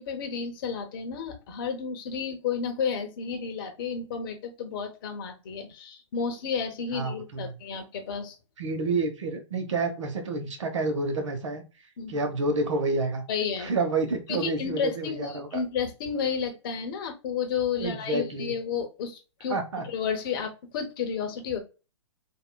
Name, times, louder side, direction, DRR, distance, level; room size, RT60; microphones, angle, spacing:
voice 1, 0.0-8.4 12.0-12.2 13.3-13.7 14.3-19.6 19.8-21.6, left 6 dB, 45° left, 5 dB, 0.9 m, -31 dB
voice 2, 6.9-7.6 8.6-11.6 12.1-13.2 13.6-15.6 17.8-18.5 19.5-19.9, right 3 dB, 75° right, 6 dB, 0.9 m, -29 dB
3.5 x 2.4 x 2.2 m, 0.31 s
hypercardioid pair, 140°, 16 cm